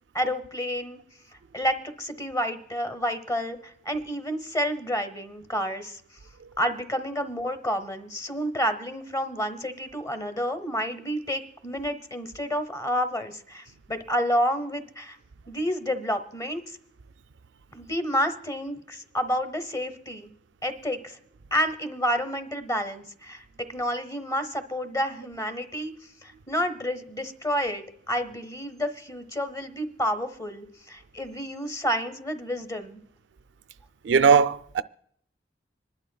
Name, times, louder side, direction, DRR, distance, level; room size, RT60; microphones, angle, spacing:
voice 1, 0.1-1.0 1.5-6.0 6.6-15.2 15.5-16.8 17.7-20.3 20.6-21.2 21.5-23.4 23.7-25.9 26.2-33.0, equal, 20° left, 0.9 m, -29 dB
voice 2, 34.0-34.8, right 6 dB, 85° right, 0.4 m, -19 dB
26.0 x 11.5 x 2.3 m
head